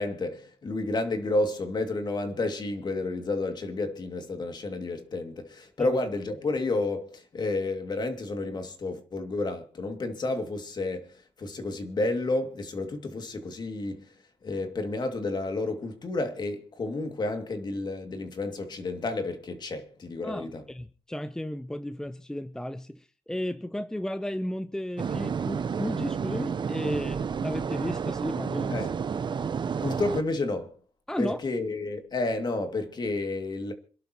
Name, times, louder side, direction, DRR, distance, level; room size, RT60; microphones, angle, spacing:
voice 1, 0.0-14.1 14.4-20.6 28.7-28.9 29.8-30.7 31.2-33.7, left 2 dB, 40° left, 2.4 m, -31 dB
voice 2, 20.2-28.9 31.1-31.4, left 1 dB, 5° left, 0.7 m, -34 dB
sound 1, 25.0-30.2, right 6 dB, 45° right, 0.9 m, -30 dB
27.0 x 11.5 x 3.0 m
cardioid pair, 105°, 11 cm